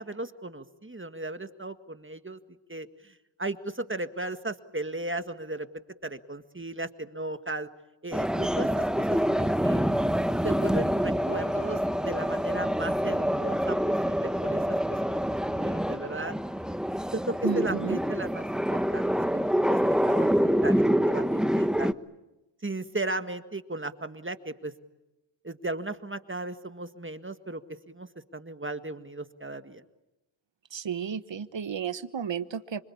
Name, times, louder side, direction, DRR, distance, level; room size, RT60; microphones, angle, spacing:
voice 1, 0.0-2.4 2.7-7.7 8.0-9.8 10.4-15.2 15.5-16.4 17.1-19.8 20.0-22.0 22.6-24.7 25.4-29.8, right 2 dB, 25° right, 10 dB, 1.8 m, -36 dB
sound 1, 8.1-21.9, equal, ahead, 1.2 m, -26 dB
voice 2, 17.4-18.0 30.7-32.8, right 7 dB, 65° right, 13 dB, 1.3 m, -33 dB
26.5 x 25.5 x 8.7 m, 0.97 s
cardioid pair, 40°, 47 cm